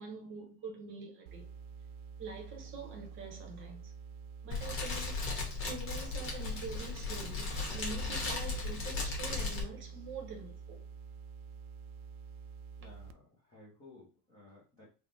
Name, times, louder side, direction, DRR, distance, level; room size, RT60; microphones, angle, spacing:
voice 1, 0.0-1.5 2.2-3.9 4.4-5.2 5.6-10.8, right 4 dB, 25° right, 0.7 m, -45 dB
sound 1, 1.3-13.1, right 6 dB, 90° right, 0.6 m, -48 dB
Fire, 4.5-9.6, left 3 dB, 25° left, 1.1 m, -36 dB
voice 2, 12.8-14.9, left 2 dB, 10° left, 0.3 m, -57 dB
3.4 x 2.0 x 3.9 m
supercardioid pair, 150°, 49 cm